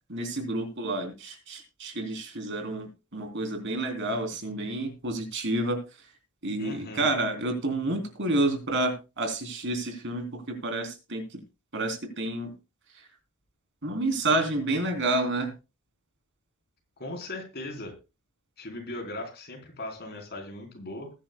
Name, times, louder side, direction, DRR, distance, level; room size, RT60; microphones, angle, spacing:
voice 1, 0.1-5.8 6.4-11.4 11.7-12.5 13.8-15.5, right 2 dB, 55° right, 5 dB, 3.4 m, -29 dB
voice 2, 6.6-7.1 17.0-17.9 18.6-21.1, left 2 dB, 45° left, 3 dB, 3.9 m, -38 dB
20.5 x 10.0 x 2.2 m, 0.28 s
head